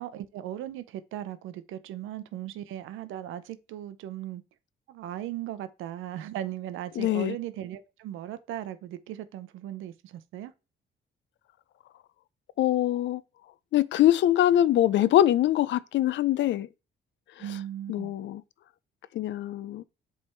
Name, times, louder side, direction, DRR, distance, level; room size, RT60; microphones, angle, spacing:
voice 1, 0.0-4.4 4.9-10.5 17.4-18.1, right 12 dB, 90° right, 0.6 m, -37 dB
voice 2, 7.0-7.4 12.6-13.2 13.7-16.7 17.9-18.4 19.1-19.8, left 12 dB, 70° left, 0.5 m, -23 dB
7.6 x 3.4 x 4.3 m
cardioid pair, 90°, 20 cm